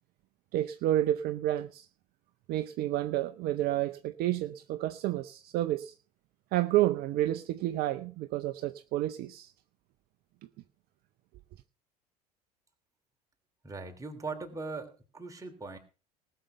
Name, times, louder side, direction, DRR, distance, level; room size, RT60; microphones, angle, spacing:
voice 1, 0.5-1.9 2.5-5.9 6.5-9.5, right 14 dB, 50° right, 0.7 m, -30 dB
voice 2, 13.6-15.8, right 3 dB, 15° right, 3.3 m, -40 dB
19.0 x 6.7 x 5.7 m
figure-of-eight pair, 70°, 20 cm